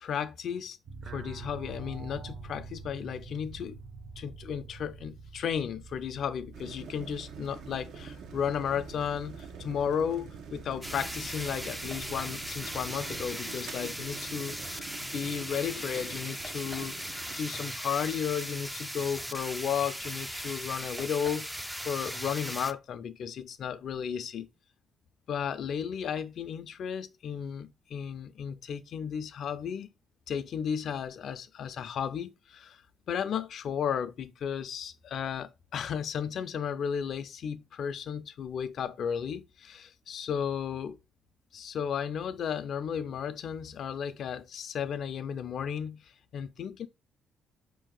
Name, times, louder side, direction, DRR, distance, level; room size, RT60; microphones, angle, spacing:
voice 1, 0.0-0.8 1.1-3.8 4.2-24.5 25.3-29.9 30.3-32.8 33.1-41.0 41.5-46.9, left 8 dB, 60° left, 0.5 m, -34 dB
sound 1, 0.9-13.3, right 4 dB, 45° right, 0.7 m, -47 dB
sound 2, 6.5-17.4, right 6 dB, 75° right, 0.8 m, -46 dB
sound 3, 10.8-22.7, equal, 5° right, 0.3 m, -38 dB
4.9 x 2.8 x 3.7 m
cardioid pair, 120°, 0 cm